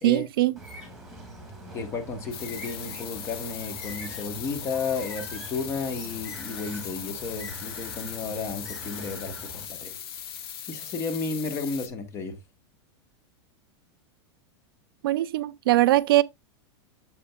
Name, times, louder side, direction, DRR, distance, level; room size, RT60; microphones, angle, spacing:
voice 1, 0.0-0.5 15.0-16.2, right 16 dB, 55° right, 0.4 m, -21 dB
Bird, 0.6-9.7, right 1 dB, ahead, 1.7 m, -43 dB
voice 2, 1.7-9.9 10.7-12.4, left 4 dB, 20° left, 1.1 m, -33 dB
sound 1, 2.3-11.9, left 9 dB, 55° left, 1.2 m, -39 dB
8.5 x 6.8 x 2.3 m
supercardioid pair, 175°, 14 cm